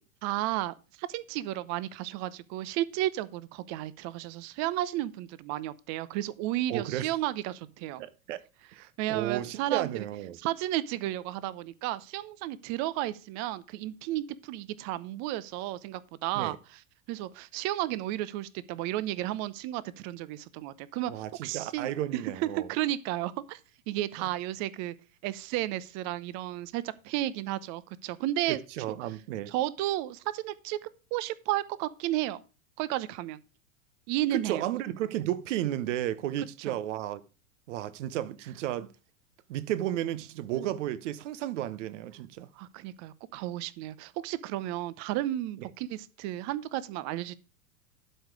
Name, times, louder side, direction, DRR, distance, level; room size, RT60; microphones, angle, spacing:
voice 1, 0.2-8.0 9.0-10.1 10.3-16.6 17.1-23.6 23.9-24.9 25.2-28.6 29.5-30.8 31.1-32.4 32.8-33.4 34.1-34.6 36.7-36.8 40.5-40.7 42.6-47.3, right 14 dB, 40° right, 0.8 m, -33 dB
voice 2, 6.7-7.1 8.0-8.4 8.7-10.4 16.3-16.6 21.1-22.7 24.2-24.3 28.5-29.5 34.3-37.2 37.7-38.9 39.5-42.5, right 12 dB, 60° right, 1.1 m, -33 dB
12.0 x 4.8 x 4.8 m
hypercardioid pair, 100°, 41 cm